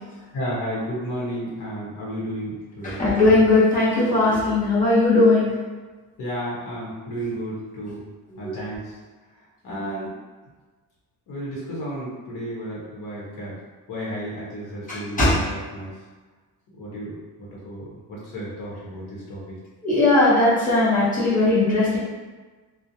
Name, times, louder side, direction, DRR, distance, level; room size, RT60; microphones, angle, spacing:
voice 1, 0.3-3.0 6.2-8.0 8.4-9.0 9.6-10.1 11.3-13.6 13.9-15.9 16.7-19.6, equal, 60° left, -6 dB, 0.8 m, -32 dB
voice 2, 2.8-5.5 8.4-8.6 15.2-15.3 19.8-22.0, left 2 dB, 20° left, -9 dB, 0.7 m, -18 dB
2.4 x 2.1 x 2.7 m, 1.3 s
cardioid pair, 180°, 39 cm